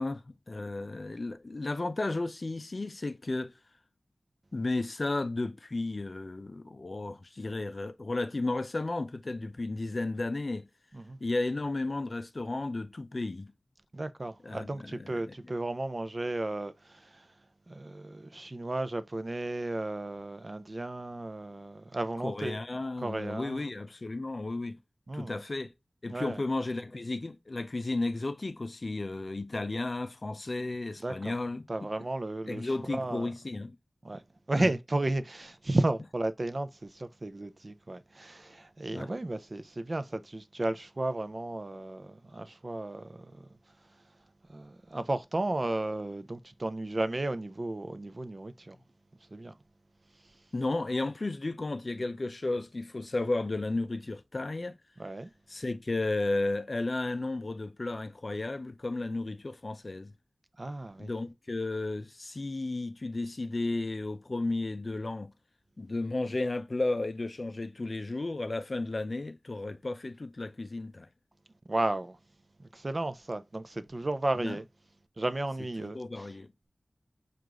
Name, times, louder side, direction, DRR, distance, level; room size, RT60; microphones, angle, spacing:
voice 1, 0.0-3.5 4.5-10.7 11.2-13.5 14.4-15.4 22.2-24.8 25.1-25.7 26.0-31.7 32.5-33.8 34.5-34.7 38.9-39.1 50.5-54.7 55.5-60.1 61.0-65.3 65.8-71.1 74.4-74.6 75.8-76.5, left 2 dB, 45° left, 0.4 m, -33 dB
voice 2, 13.9-17.3 17.7-22.6 23.0-23.6 25.1-25.4 26.1-26.4 31.0-31.4 31.7-33.3 34.0-34.2 34.5-43.5 44.5-48.8 49.3-49.6 55.0-55.3 60.6-61.1 71.7-72.2 72.6-74.6 75.2-76.3, right 2 dB, 35° right, 0.4 m, -34 dB
4.8 x 2.5 x 3.6 m
wide cardioid pair, 90°, 0 cm